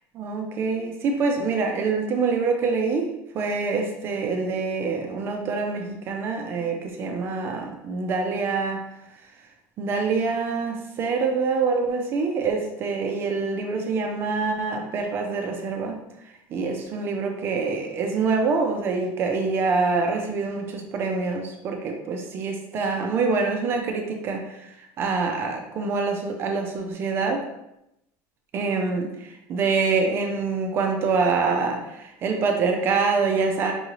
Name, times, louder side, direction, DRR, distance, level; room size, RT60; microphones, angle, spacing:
voice 1, 0.1-8.9 9.8-16.0 16.5-27.4 28.5-33.7, right 4 dB, 30° right, 3 dB, 0.4 m, -25 dB
5.5 x 2.6 x 3.0 m, 0.85 s
cardioid pair, 175°, 8 cm